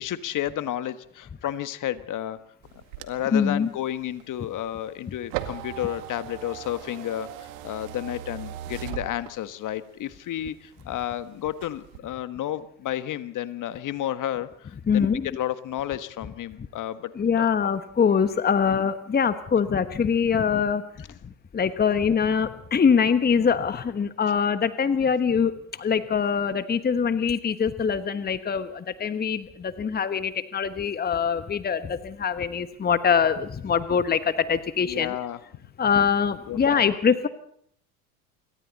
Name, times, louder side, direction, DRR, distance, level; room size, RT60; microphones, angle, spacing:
voice 1, 0.0-2.4 2.7-17.1 17.4-17.5 34.8-35.4 36.5-36.9, left 12 dB, 45° left, 12 dB, 1.5 m, -32 dB
sound 1, 2.6-9.7 10.2-11.2 11.5-12.0, right 12 dB, 65° right, 2.2 m, -38 dB
voice 2, 3.3-3.7 14.9-15.3 17.1-20.8 21.5-35.2 35.8-37.3, left 6 dB, 20° left, 11 dB, 1.3 m, -23 dB
27.5 x 24.0 x 4.2 m, 0.66 s
hypercardioid pair, 70°, 44 cm